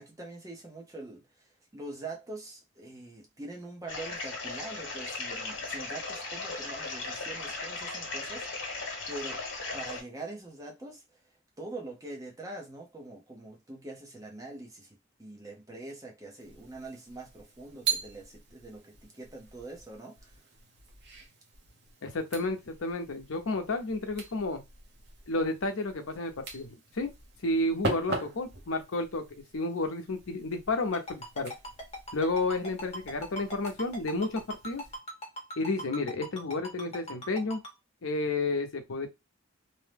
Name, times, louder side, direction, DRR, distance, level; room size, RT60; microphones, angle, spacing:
voice 1, 0.0-1.5 1.7-8.7 9.1-9.4 9.7-11.0 11.6-20.3, right 2 dB, 15° right, 0.7 m, -44 dB
sound 1, 3.9-10.0, left 3 dB, 60° left, 1.1 m, -37 dB
sound 2, 16.4-35.0, right 4 dB, 55° right, 0.8 m, -41 dB
voice 2, 22.0-24.6 25.3-27.1 27.4-29.2 29.5-31.5 32.1-34.8 35.6-37.6 38.0-39.1, left 2 dB, 80° left, 0.7 m, -31 dB
Ringtone, 30.9-37.7, equal, 30° left, 0.9 m, -39 dB
2.7 x 2.2 x 3.3 m
head